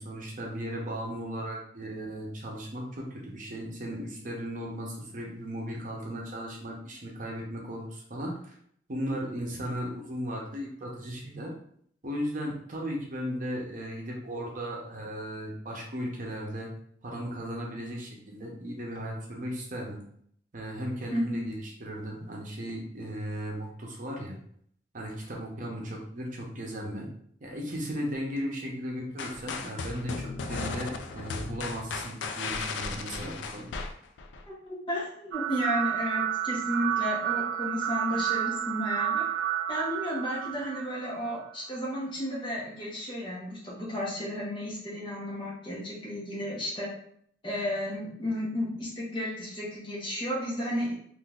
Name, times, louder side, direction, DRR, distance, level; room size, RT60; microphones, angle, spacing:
voice 1, 0.0-8.5 8.9-11.5 12.0-16.7 17.0-20.0 20.5-24.4 24.9-27.1 27.4-33.7, equal, 50° right, -1 dB, 0.7 m, -36 dB
voice 2, 21.1-21.5 34.5-39.2 39.7-46.9 47.4-51.0, equal, 30° left, -5 dB, 1.1 m, -33 dB
sound 1, 29.2-34.4, left 4 dB, 85° left, 0.4 m, -36 dB
sound 2, 35.3-41.4, right 11 dB, 85° right, 0.3 m, -31 dB
3.7 x 2.6 x 2.4 m, 0.64 s
head